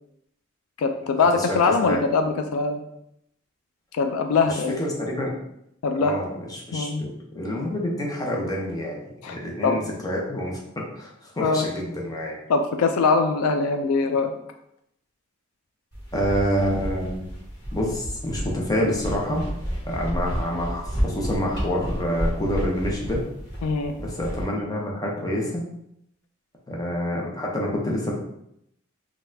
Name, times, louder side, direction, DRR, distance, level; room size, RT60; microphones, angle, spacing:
voice 1, 0.8-2.8 3.9-4.8 5.8-6.1 6.7-7.0 9.2-9.4 9.6-9.8 11.4-11.7 12.5-14.3 23.6-23.9, left 4 dB, 80° left, 6 dB, 0.3 m, -22 dB
voice 2, 4.5-5.4 6.0-12.3 16.1-17.3 17.7-19.4 19.9-23.2 24.0-25.6 26.7-28.1, equal, 20° left, -2 dB, 0.6 m, -27 dB
sound 1, 15.9-24.4, equal, 55° left, 1.3 m, -31 dB
4.0 x 2.3 x 2.6 m, 0.78 s
head